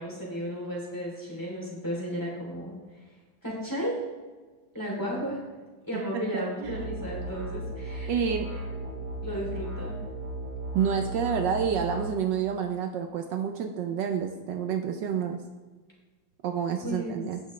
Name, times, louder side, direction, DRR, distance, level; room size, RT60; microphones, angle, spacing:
voice 1, 0.0-2.7 3.4-3.9 4.7-5.4 5.9-8.1 8.5-8.6 8.9-9.9 16.8-17.2, equal, 10° left, -4 dB, 3.0 m, -34 dB
voice 2, 5.9-6.8 8.1-8.5 10.7-15.4 16.4-17.4, right 7 dB, 75° right, 5 dB, 1.3 m, -29 dB
sound 1, 6.6-12.1, right 1 dB, 40° right, 3.4 m, -36 dB
17.0 x 6.1 x 3.2 m, 1.3 s
omnidirectional pair, 2.0 m